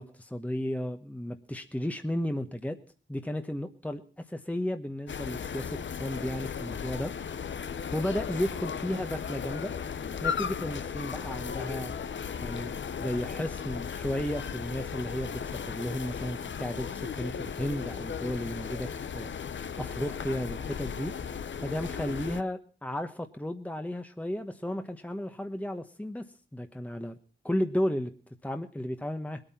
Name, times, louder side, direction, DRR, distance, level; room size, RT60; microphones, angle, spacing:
voice 1, 0.0-2.8 3.1-7.1 7.9-9.7 10.2-11.9 12.4-12.7 13.0-26.3 26.5-27.2 27.4-28.1 28.4-29.4, left 1 dB, 5° left, 7 dB, 1.2 m, -34 dB
sound 1, 5.1-22.4, left 7 dB, 70° left, 0.8 m, -36 dB
20.0 x 9.0 x 5.7 m, 0.39 s
cardioid pair, 65°, 20 cm